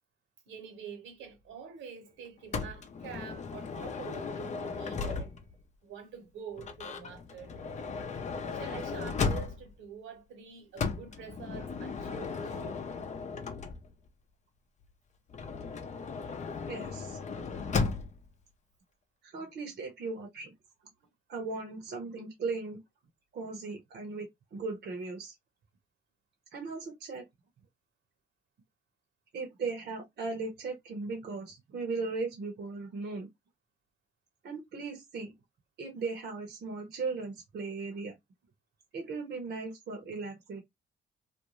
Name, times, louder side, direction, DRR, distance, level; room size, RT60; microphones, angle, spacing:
voice 1, 0.5-5.4 5.8-7.6 8.5-12.9, right 6 dB, 75° right, 1.2 m, -46 dB
Motor vehicle (road) / Sliding door, 2.5-5.6 6.6-9.8 10.8-14.1 15.3-18.3, left 5 dB, 35° left, 0.6 m, -36 dB
voice 2, 16.7-17.2 19.2-20.5 21.3-22.8 23.3-25.3 26.5-27.3 29.3-33.3 34.4-35.3 35.8-38.2 38.9-40.6, right 4 dB, 55° right, 0.9 m, -37 dB
2.5 x 2.2 x 3.0 m
cardioid pair, 90°, 20 cm